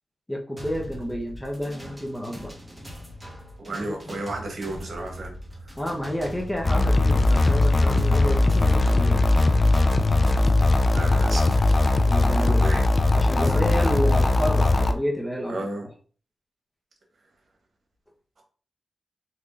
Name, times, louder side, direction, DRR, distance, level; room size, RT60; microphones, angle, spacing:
voice 1, 0.3-2.5 5.8-9.2 12.1-12.8 13.1-15.7, equal, 10° left, 1 dB, 0.9 m, -30 dB
sound 1, 0.6-11.9, equal, 20° right, 1.2 m, -41 dB
voice 2, 3.6-5.3 5.6-5.7 10.9-11.6 12.3-12.8 13.4-14.2 15.5-15.8, right 2 dB, 65° right, 1 dB, 1.2 m, -33 dB
sound 2, 6.6-14.9, left 2 dB, 40° left, 0.4 m, -19 dB
3.5 x 3.0 x 2.5 m, 0.41 s
cardioid pair, 50°, 0 cm